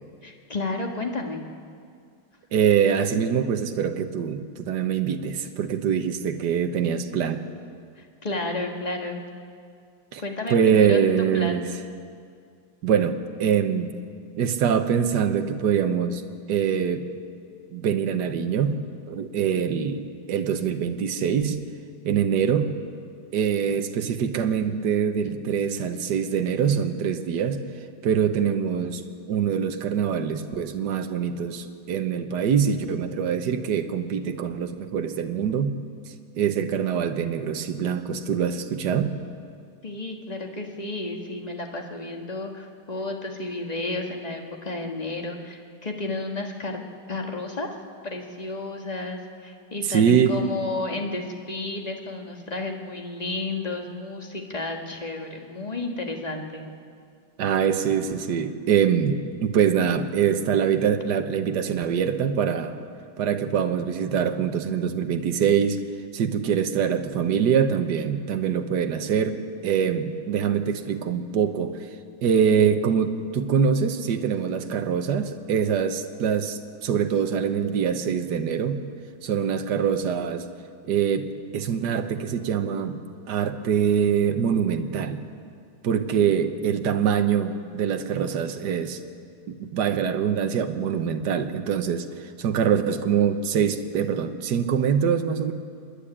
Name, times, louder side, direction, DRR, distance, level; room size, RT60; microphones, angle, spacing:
voice 1, 0.2-1.4 8.0-9.2 10.2-11.8 39.8-46.8 47.1-47.7 48.0-56.6, left 2 dB, 20° left, 3 dB, 1.7 m, -32 dB
voice 2, 2.5-7.4 10.1-10.2 10.5-11.7 12.8-13.9 14.4-16.2 16.5-17.0 17.7-18.8 19.1-20.0 20.3-21.6 22.0-22.7 23.3-27.6 28.0-35.8 36.4-39.1 49.9-50.4 57.4-62.8 63.2-65.8 66.1-71.8 72.2-78.8 79.2-80.5 80.8-83.0 83.3-85.3 85.8-89.0 89.5-95.5, right 7 dB, 65° right, 7 dB, 1.6 m, -24 dB
25.5 x 10.5 x 10.0 m, 2.2 s
omnidirectional pair, 2.1 m